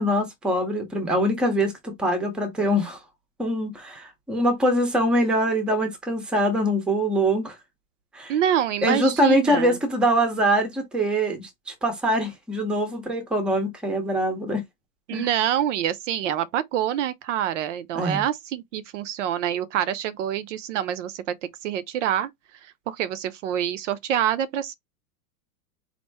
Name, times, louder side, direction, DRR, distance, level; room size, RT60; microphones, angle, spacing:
voice 1, 0.0-3.0 3.4-7.6 8.1-8.3 8.8-14.6 15.1-15.3 17.9-18.2, equal, ahead, 0.6 m, -23 dB
voice 2, 8.3-9.8 15.1-22.3 22.6-24.7, right 10 dB, 55° right, 0.5 m, -26 dB
4.2 x 2.5 x 3.3 m
supercardioid pair, 155°, 46 cm